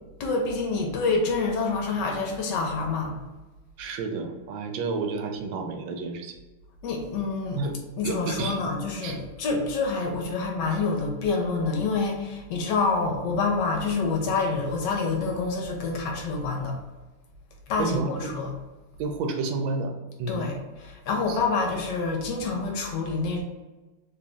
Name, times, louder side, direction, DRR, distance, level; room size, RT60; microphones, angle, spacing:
voice 1, 0.2-3.2 6.8-7.6 8.0-16.8 17.7-18.5 20.3-23.4, left 4 dB, 70° left, 2 dB, 1.2 m, -27 dB
voice 2, 3.8-6.3 7.5-7.7 8.0-8.6 9.0-9.2 17.8-18.3 19.0-19.9 20.2-20.4 21.3-21.4, right 4 dB, 90° right, 4 dB, 1.4 m, -30 dB
3.3 x 2.3 x 4.1 m, 1.2 s
omnidirectional pair, 2.1 m